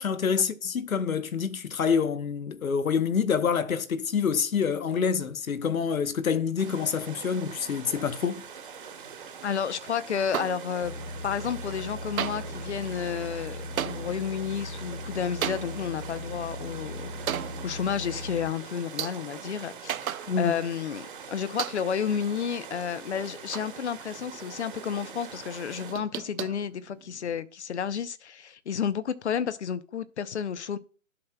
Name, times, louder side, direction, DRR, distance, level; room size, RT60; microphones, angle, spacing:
voice 1, 0.0-8.4 20.3-20.5, left 6 dB, 80° left, 1.0 m, -27 dB
sound 1, 6.6-25.9, right 7 dB, 40° right, 1.2 m, -43 dB
voice 2, 9.4-11.0 11.2-17.1 17.4-30.8, left 7 dB, 55° left, 0.7 m, -31 dB
sound 2, 10.3-11.1 11.4-11.9 12.2-20.8 21.0-21.1 21.6-22.1 22.6-24.3 24.6-25.0 25.4-27.4, right 10 dB, 90° right, 0.6 m, -37 dB
sound 3, 10.8-18.5, left 2 dB, 20° left, 1.0 m, -39 dB
11.5 x 5.8 x 2.2 m
hypercardioid pair, 165°, 41 cm